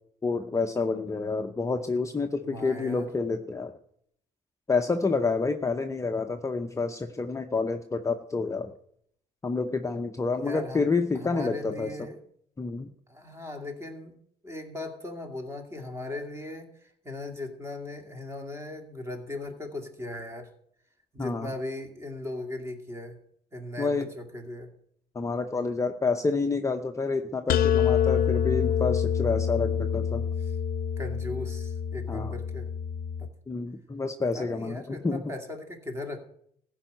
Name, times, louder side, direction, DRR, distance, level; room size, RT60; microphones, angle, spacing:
voice 1, 0.2-3.7 4.7-8.7 9.4-12.0 12.6-12.9 21.2-21.5 23.8-24.1 25.1-30.2 32.1-32.4 33.5-35.2, left 4 dB, 20° left, 5 dB, 0.7 m, -28 dB
voice 2, 2.4-3.1 10.3-10.9 11.1-12.2 13.1-14.1 14.4-20.5 21.1-23.2 23.5-24.7 28.1-28.2 31.0-32.7 33.2-33.3 34.3-36.2, left 2 dB, 15° right, 4 dB, 2.3 m, -38 dB
sound 1, 27.5-33.3, left 8 dB, 60° left, 0.5 m, -26 dB
15.0 x 5.5 x 9.1 m, 0.69 s
cardioid pair, 110°, 17 cm